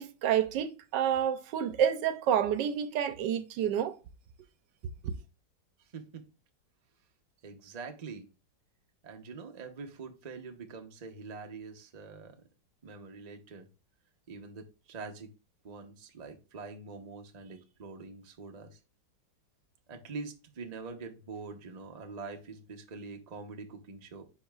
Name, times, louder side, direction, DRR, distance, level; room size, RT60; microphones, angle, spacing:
voice 1, 0.0-4.0, right 9 dB, 80° right, 1.2 m, -29 dB
voice 2, 5.8-6.2 7.4-8.3 9.0-12.3 12.8-13.7 14.3-15.3 15.6-18.8 19.9-24.2, right 4 dB, 45° right, 0.5 m, -44 dB
10.0 x 4.2 x 2.3 m
omnidirectional pair, 2.0 m